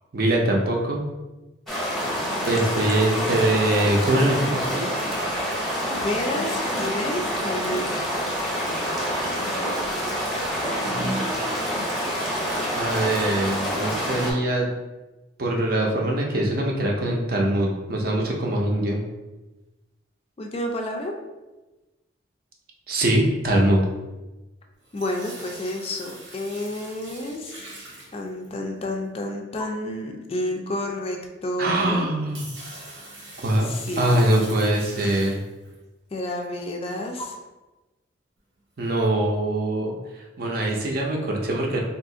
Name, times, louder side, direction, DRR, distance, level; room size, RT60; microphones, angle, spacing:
voice 1, 0.1-1.0 2.5-4.9 10.8-11.3 12.8-14.7 15.4-19.0 22.9-23.9 31.6-32.5 33.4-33.7 34.0-35.4 38.8-39.9 40.4-41.8, right 1 dB, 50° right, 0 dB, 0.5 m, -23 dB
sound 1, 1.7-14.3, equal, ahead, 0.7 m, -27 dB
voice 2, 6.0-7.8 20.4-21.1 24.9-27.7 28.1-32.1 33.6-34.3 36.1-37.3, left 1 dB, 30° left, 2 dB, 0.4 m, -30 dB
sound 2, 24.8-28.7 29.6-29.7 31.6-31.7 32.1-35.8 36.3-36.4 37.2-37.3 38.8-39.1, right 1 dB, 90° right, 1.0 m, -42 dB
2.8 x 2.4 x 3.7 m, 1.1 s
head